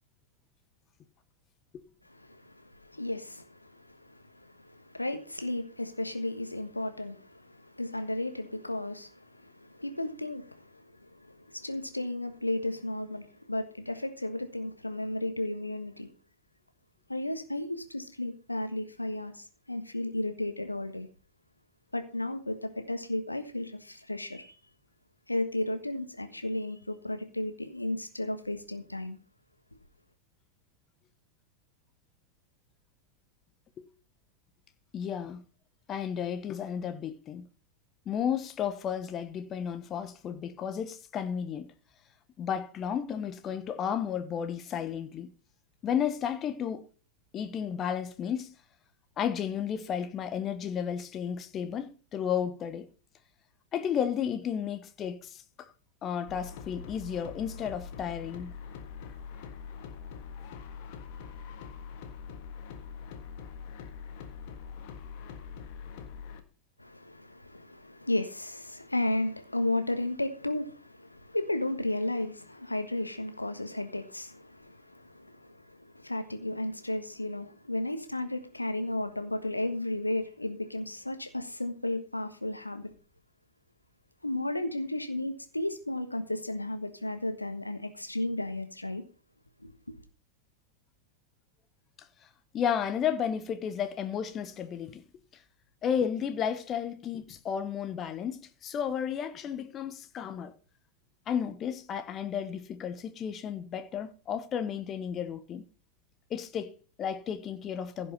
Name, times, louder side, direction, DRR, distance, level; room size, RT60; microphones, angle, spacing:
voice 1, 2.1-16.1 17.1-21.1 21.9-24.5 25.3-29.2 66.8-82.9 84.2-89.0 89.6-89.7, left 1 dB, 85° left, 1.4 m, -34 dB
voice 2, 34.9-35.4 35.9-37.5 38.1-41.7 42.4-45.3 45.8-46.9 47.3-48.5 49.2-52.9 53.7-55.7 56.0-58.5 92.5-95.0 95.8-100.5 101.3-105.6 106.3-108.1, left 8 dB, 30° left, 1.0 m, -33 dB
sound 1, 56.3-66.4, left 6 dB, 45° left, 1.6 m, -43 dB
15.5 x 5.5 x 5.5 m
figure-of-eight pair, 90°, 0 cm